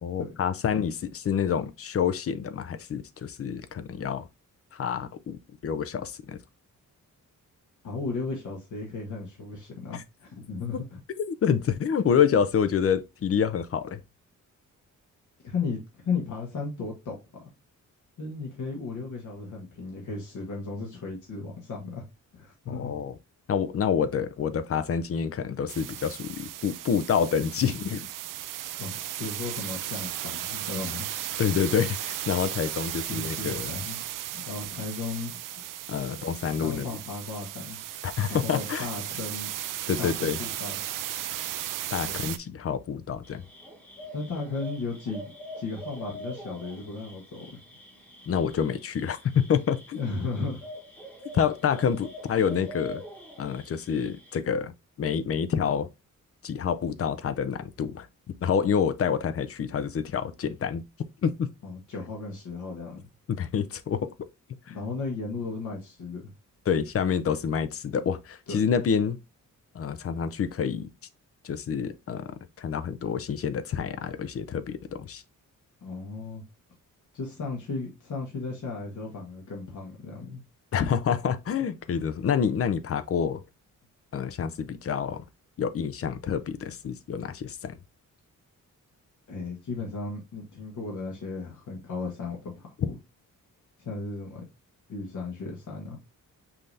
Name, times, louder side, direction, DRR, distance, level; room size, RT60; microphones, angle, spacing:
voice 1, 0.0-4.3 4.7-6.4 9.9-10.0 11.2-14.0 22.7-23.1 23.5-28.1 31.4-33.8 35.9-36.9 38.0-38.9 39.9-40.4 41.9-43.4 48.3-50.0 51.3-53.0 53.4-54.7 55.0-55.9 56.4-58.1 58.4-60.8 61.2-61.5 63.3-64.1 64.7-64.8 66.7-69.2 69.7-70.9 71.4-75.2 80.7-83.4 84.1-85.2 85.6-87.8, left 7 dB, 45° left, 0.5 m, -27 dB
voice 2, 7.8-11.0 15.4-17.2 18.2-22.0 22.3-22.9 28.8-31.0 32.9-34.0 34.3-35.4 36.1-36.2 36.6-37.8 38.3-39.5 40.0-40.8 42.1-42.3 44.1-47.5 49.9-50.7 61.6-63.1 64.7-66.3 68.5-68.6 75.8-76.4 77.1-80.4 89.3-93.0 93.8-94.4 94.9-96.0, left 4 dB, 65° left, 1.4 m, -35 dB
sound 1, 25.7-42.4, right 12 dB, 75° right, 0.5 m, -36 dB
sound 2, 43.2-54.4, equal, 5° left, 1.1 m, -44 dB
5.6 x 2.7 x 3.2 m
wide cardioid pair, 160°, 32 cm